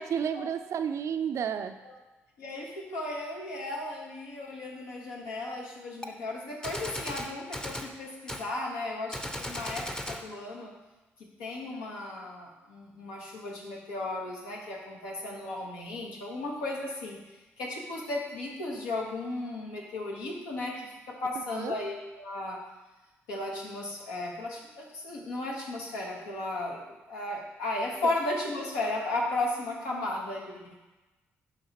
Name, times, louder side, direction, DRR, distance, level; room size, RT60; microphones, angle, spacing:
voice 1, 0.0-1.7 21.4-21.8, right 8 dB, 60° right, 9 dB, 0.4 m, -31 dB
voice 2, 2.4-10.7 11.2-17.2 17.6-22.6 23.3-30.8, left 2 dB, 85° left, -2 dB, 1.2 m, -35 dB
Gunshot gunfire, 6.0-6.1 6.6-7.9 8.3-8.5 9.1-10.3, left 1 dB, 10° left, 0.7 m, -37 dB
10.0 x 3.4 x 2.9 m, 1.1 s
hypercardioid pair, 50°, 6 cm